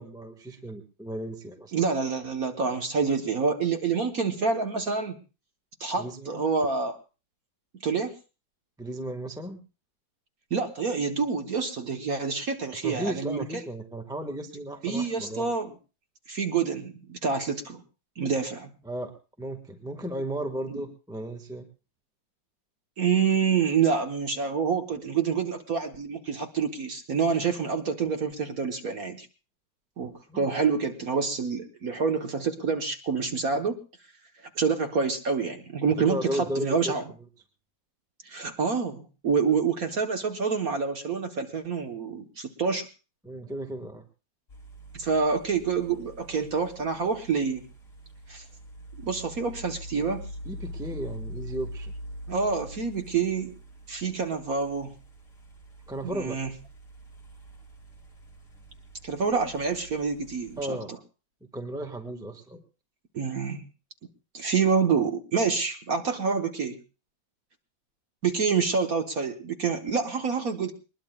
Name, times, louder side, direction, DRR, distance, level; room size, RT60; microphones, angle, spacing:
voice 1, 0.0-1.8 6.0-6.4 8.8-9.6 12.7-15.5 18.9-19.1 19.4-21.7 30.3-30.5 36.0-36.9 43.2-44.0 50.4-51.9 55.9-56.4 60.6-61.0 61.5-62.6, right 1 dB, ahead, 4 dB, 1.4 m, -35 dB
voice 2, 1.7-5.2 5.8-7.0 7.8-8.1 10.5-13.6 14.8-15.7 16.3-17.8 18.2-18.7 20.7-20.8 23.0-29.3 30.0-33.8 34.3-37.1 38.2-42.9 44.9-47.7 48.3-48.4 49.0-50.3 52.3-53.5 53.9-55.0 56.0-56.5 59.0-61.0 63.1-63.6 64.3-66.8 68.2-70.7, right 5 dB, 50° right, 6 dB, 1.5 m, -27 dB
sound 1, 44.5-60.7, equal, 40° left, 3.1 m, -44 dB
22.0 x 20.5 x 2.4 m, 0.33 s
omnidirectional pair, 2.1 m